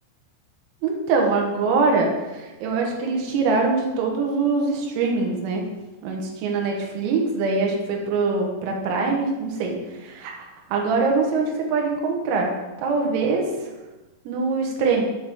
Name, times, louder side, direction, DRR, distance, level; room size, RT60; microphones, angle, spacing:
voice 1, 0.8-5.6 6.0-12.5 12.8-13.7 14.3-15.0, right 4 dB, 85° right, 0 dB, 3.9 m, -23 dB
9.3 x 6.2 x 3.6 m, 1.1 s
omnidirectional pair, 6.0 m